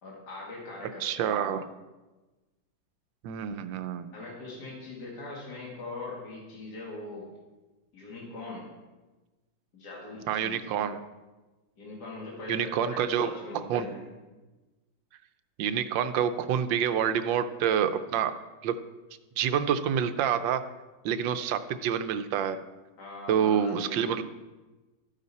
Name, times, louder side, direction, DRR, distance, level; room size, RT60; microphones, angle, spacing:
voice 1, 0.0-1.4 4.1-7.3 7.9-8.7 9.7-10.7 11.8-14.1 23.0-24.2, left 2 dB, 60° left, -3 dB, 2.7 m, -41 dB
voice 2, 1.0-1.7 3.2-4.1 10.3-11.0 12.5-13.3 13.7-13.9 15.6-18.4 18.6-18.8 19.4-20.7 21.0-22.6 23.3-24.2, right 8 dB, 90° right, 11 dB, 1.4 m, -27 dB
13.5 x 9.0 x 4.2 m, 1.2 s
omnidirectional pair, 2.0 m